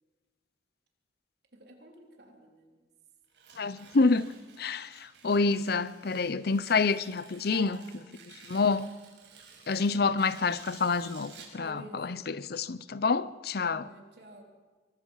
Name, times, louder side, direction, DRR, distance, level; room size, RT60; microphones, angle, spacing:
voice 1, 1.5-2.9 7.5-8.0 8.2-8.3 11.6-12.2 13.6-14.4, right 1 dB, 65° right, 3.8 m, -49 dB
Tearing, 3.3-11.6, right 5 dB, 80° right, 5.6 m, -54 dB
voice 2, 3.6-4.3 4.6-7.8 8.3-8.9 9.7-13.9, left 4 dB, 60° left, 0.6 m, -28 dB
23.5 x 20.5 x 5.7 m
head